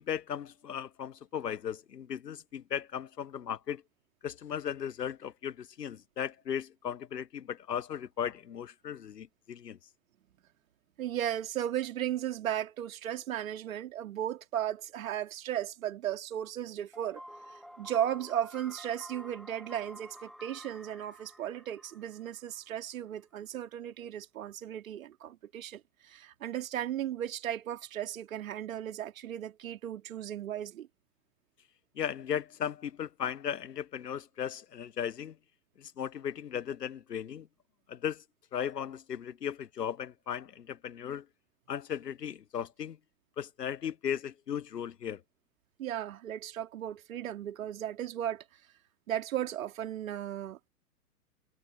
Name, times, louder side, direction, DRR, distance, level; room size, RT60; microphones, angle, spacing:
voice 1, 0.0-3.8 4.2-9.8 32.0-35.4 35.8-37.5 37.9-38.2 38.5-41.3 41.7-43.0 43.4-45.2, left 8 dB, 85° left, 0.7 m, -36 dB
voice 2, 11.0-17.2 17.5-30.9 45.8-48.4 49.1-50.7, right 11 dB, 55° right, 2.8 m, -36 dB
sound 1, 16.9-22.8, equal, ahead, 2.2 m, -50 dB
figure-of-eight pair, 115°, 48 cm